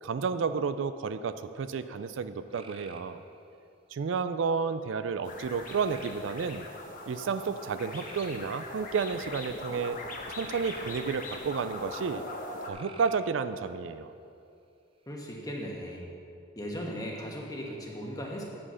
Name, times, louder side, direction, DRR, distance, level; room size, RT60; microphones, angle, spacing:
voice 1, 0.0-3.2 3.9-6.7 7.1-10.0 10.3-12.2 12.7-14.1, right 5 dB, 70° right, 11 dB, 0.4 m, -31 dB
sound 1, 2.5-3.5 5.6-6.4 7.9-9.1 10.4-11.5 12.7-13.4 15.1-15.6, right 4 dB, 25° right, 0.6 m, -52 dB
sound 2, 5.2-12.7, left 2 dB, 40° left, 1.0 m, -41 dB
voice 2, 15.1-16.1 16.6-18.4, equal, 20° left, -1 dB, 1.3 m, -37 dB
8.7 x 7.7 x 5.5 m, 2.6 s
head